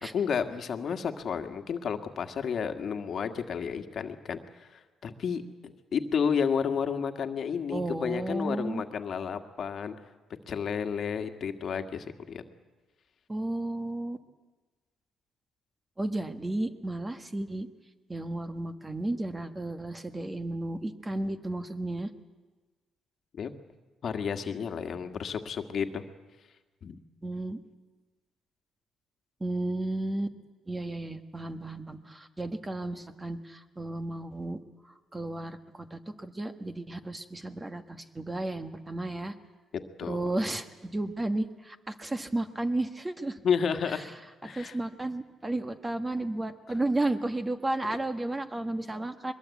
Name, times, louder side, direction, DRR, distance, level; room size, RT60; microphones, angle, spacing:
voice 1, 0.1-9.9 10.5-12.4 23.4-23.5 24.0-26.0 26.8-27.0 40.0-40.3 43.4-44.1 44.4-44.8, left 6 dB, 55° left, 7 dB, 1.7 m, -31 dB
voice 2, 7.7-8.8 13.3-14.2 16.0-17.7 18.1-22.1 27.2-27.6 29.4-30.3 30.7-34.6 35.1-39.3 40.1-43.4 44.4-49.3, right 2 dB, 20° right, 8 dB, 1.5 m, -33 dB
22.5 x 21.0 x 8.4 m, 1.3 s
cardioid pair, 90°, 0 cm